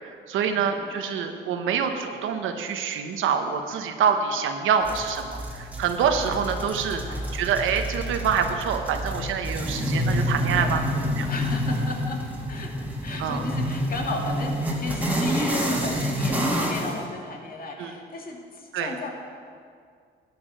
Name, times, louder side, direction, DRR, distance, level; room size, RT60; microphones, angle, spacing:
voice 1, 0.0-7.0 7.3-10.8 11.2-11.3 13.2-13.4 17.8-17.9 18.7-18.9, right 7 dB, 85° right, 6 dB, 1.2 m, -26 dB
voice 2, 0.5-1.0 6.9-7.3 10.5-10.9 11.3-19.1, left 3 dB, 45° left, 1 dB, 2.3 m, -35 dB
sound 1, 4.8-17.0, equal, 10° right, 2.2 m, -28 dB
13.0 x 9.9 x 6.2 m, 2.2 s
cardioid pair, 90°, 20 cm